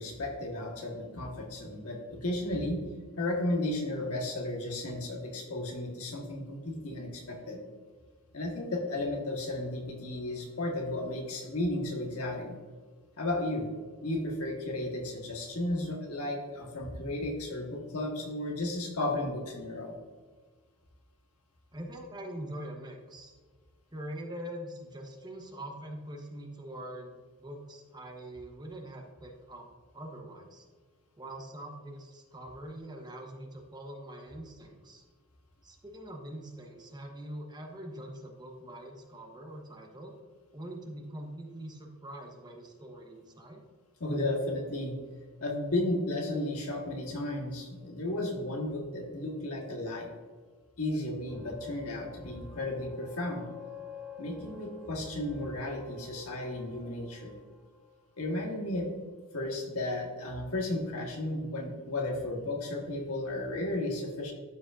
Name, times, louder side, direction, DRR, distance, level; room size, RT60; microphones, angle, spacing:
voice 1, 0.0-2.8 3.2-7.6 8.3-12.5 13.2-13.7 14.0-19.9 44.0-44.9 45.4-50.1 50.8-53.4 54.2-57.3 58.2-58.9 59.3-64.3, left 1 dB, 80° left, 0 dB, 1.4 m, -34 dB
voice 2, 21.7-23.4 23.9-29.7 29.9-30.6 31.2-35.0 35.6-40.1 40.5-43.6, right 1 dB, 20° right, 1 dB, 1.0 m, -43 dB
sound 1, 51.3-58.6, left 4 dB, 5° right, 0.6 m, -49 dB
12.0 x 4.9 x 2.6 m, 1.5 s
head